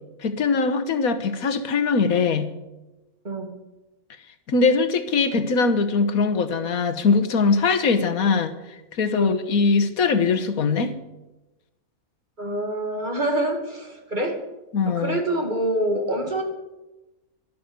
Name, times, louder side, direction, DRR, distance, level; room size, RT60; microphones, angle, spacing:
voice 1, 0.2-2.5 4.5-8.5 9.0-10.9 14.7-15.2, left 4 dB, 90° left, 10 dB, 1.6 m, -21 dB
voice 2, 12.4-14.4 14.9-16.4, right 1 dB, 35° right, 3 dB, 2.4 m, -26 dB
12.0 x 12.0 x 8.0 m, 1.0 s
omnidirectional pair, 1.5 m